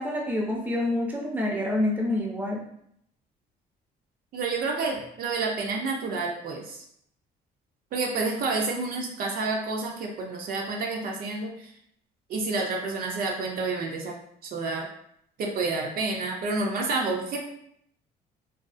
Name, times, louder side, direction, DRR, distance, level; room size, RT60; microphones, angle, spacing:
voice 1, 0.0-2.6, left 1 dB, 10° right, -1 dB, 0.5 m, -27 dB
voice 2, 4.3-6.8 7.9-11.7 12.3-14.1 14.4-14.9 15.4-17.5, right 3 dB, 60° right, 0 dB, 0.5 m, -29 dB
2.4 x 2.3 x 2.4 m, 0.71 s
cardioid pair, 110°, 17 cm